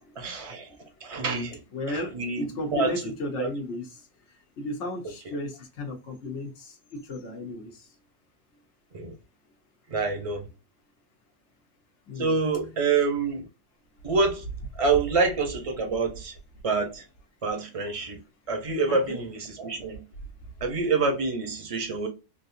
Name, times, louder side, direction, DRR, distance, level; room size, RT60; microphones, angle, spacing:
voice 1, 0.2-0.8 1.0-1.6 1.9-2.9 3.4-3.5 8.9-9.1 9.9-10.5 12.2-13.5 14.0-14.5 14.8-16.4 16.6-17.0 17.4-18.2 18.5-20.0 20.6-22.1, right 4 dB, 30° right, 0.8 m, -27 dB
voice 2, 1.7-3.9 4.6-7.7 12.1-12.4 18.9-19.2, left 1 dB, 65° left, 1.2 m, -34 dB
3.5 x 2.6 x 2.6 m
omnidirectional pair, 1.3 m